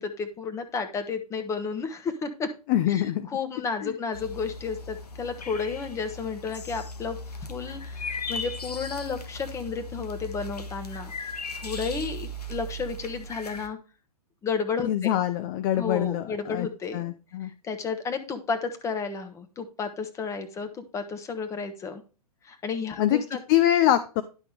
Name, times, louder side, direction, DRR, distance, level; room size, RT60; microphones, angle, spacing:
voice 1, 0.0-2.5 2.9-11.1 11.5-13.8 14.4-15.1 15.8-17.1 17.4-22.0 22.4-23.4, left 5 dB, 15° left, 8 dB, 1.1 m, -32 dB
voice 2, 2.7-3.3 3.8-3.9 14.8-16.7 16.9-17.5 23.0-23.2 23.5-24.2, left 12 dB, 30° left, 11 dB, 0.5 m, -24 dB
sound 1, 4.1-13.7, left 2 dB, 80° left, 1.4 m, -37 dB
11.0 x 5.8 x 3.3 m, 0.34 s
figure-of-eight pair, 115°, 20 cm